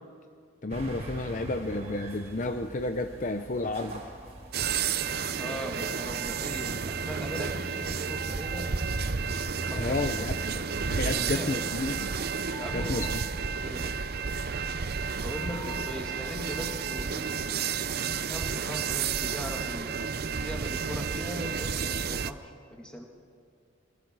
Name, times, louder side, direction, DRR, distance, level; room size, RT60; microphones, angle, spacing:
voice 1, 0.6-4.0 9.7-10.3 10.9-12.1 12.7-13.1 13.7-13.9, left 2 dB, 40° left, 7 dB, 0.7 m, -31 dB
sound 1, 0.7-11.1, right 1 dB, 35° right, 4.5 m, -42 dB
sound 2, 4.2-5.4 5.8-10.1 10.8-17.5 18.3-20.9, right 2 dB, 75° right, 1.4 m, -49 dB
sound 3, 4.5-22.3, right 6 dB, 50° right, 0.6 m, -31 dB
voice 2, 5.4-9.0 9.7-10.0 11.0-11.6 12.6-13.0 13.6-13.9 15.2-17.3 18.2-20.0 20.4-23.0, equal, 5° left, 0 dB, 2.5 m, -39 dB
26.0 x 23.5 x 4.8 m, 2.2 s
head